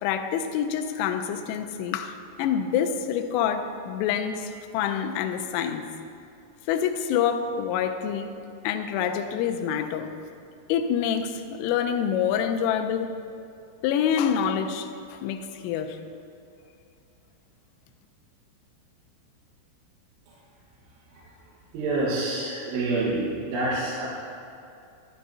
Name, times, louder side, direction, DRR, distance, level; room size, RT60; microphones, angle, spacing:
voice 1, 0.0-5.9 6.7-8.3 8.6-10.1 10.7-13.1 13.8-16.0, left 8 dB, 85° left, 6 dB, 3.1 m, -27 dB
voice 2, 21.7-24.1, right 2 dB, 70° right, -7 dB, 3.5 m, -27 dB
13.0 x 11.5 x 2.7 m, 2.6 s
omnidirectional pair, 6.0 m